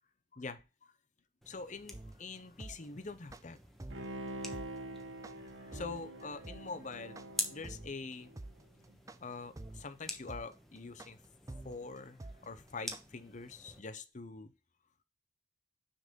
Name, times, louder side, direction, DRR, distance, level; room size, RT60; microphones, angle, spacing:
sound 1, 1.4-13.8, left 1 dB, ahead, 1.1 m, -48 dB
voice 1, 1.5-3.6 5.7-7.2 7.5-8.3 9.2-11.2 11.6-14.5, left 4 dB, 40° left, 0.8 m, -44 dB
sound 2, 1.9-13.0, right 2 dB, 20° right, 0.4 m, -47 dB
Bowed string instrument, 3.9-8.5 8.9-9.0, right 1 dB, 85° right, 1.3 m, -46 dB
6.5 x 4.0 x 5.2 m
head